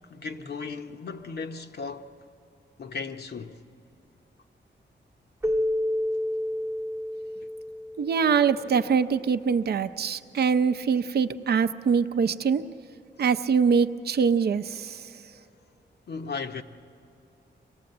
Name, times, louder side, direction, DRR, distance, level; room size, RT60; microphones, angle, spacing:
voice 1, 0.1-2.1 2.8-3.6 16.1-16.6, left 4 dB, 60° left, 0.8 m, -36 dB
Keyboard (musical), 5.4-8.6, left 1 dB, 15° right, 0.7 m, -30 dB
voice 2, 8.0-12.6 13.2-15.0, right 6 dB, 55° right, 0.6 m, -23 dB
25.0 x 18.0 x 7.8 m
wide cardioid pair, 130°, 19 cm